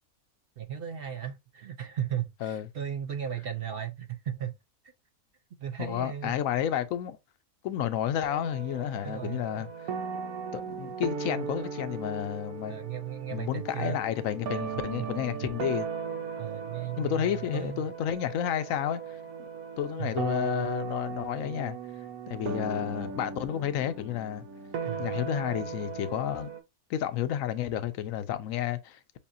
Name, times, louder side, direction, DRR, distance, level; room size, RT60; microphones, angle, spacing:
voice 1, 0.6-4.6 5.6-6.3 9.0-9.7 12.7-14.0 15.0-15.1 16.4-17.8 20.0-20.3 22.5-22.7 24.8-25.1, right 9 dB, 65° right, 0.5 m, -36 dB
voice 2, 5.8-7.2 7.6-9.7 10.5-12.8 13.3-15.9 17.0-19.5 19.8-21.8 22.3-24.4 25.0-26.5 26.9-29.2, left 10 dB, 70° left, 1.0 m, -31 dB
sound 1, 8.2-26.6, right 6 dB, 85° right, 1.3 m, -37 dB
7.0 x 2.4 x 2.6 m
omnidirectional pair, 1.5 m